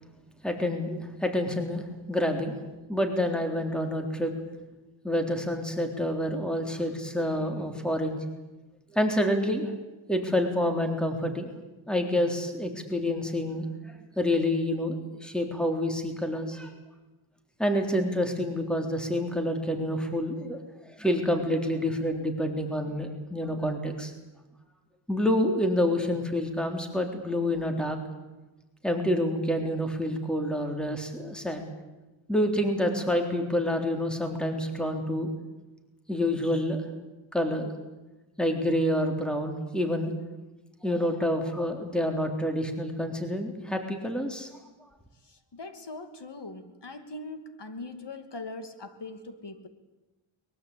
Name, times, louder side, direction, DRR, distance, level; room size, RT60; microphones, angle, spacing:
voice 1, 0.4-2.6 2.9-4.3 5.0-8.2 8.9-9.7 10.1-11.5 11.9-16.7 17.6-20.6 21.0-24.1 25.1-28.0 28.8-31.6 32.3-35.3 36.1-36.8 37.3-37.7 38.4-40.1 40.8-44.5, left 1 dB, ahead, 4 dB, 3.7 m, -28 dB
voice 2, 45.5-49.7, left 2 dB, 55° left, 8 dB, 2.8 m, -41 dB
23.0 x 22.0 x 8.8 m, 1.1 s
wide cardioid pair, 75°, 49 cm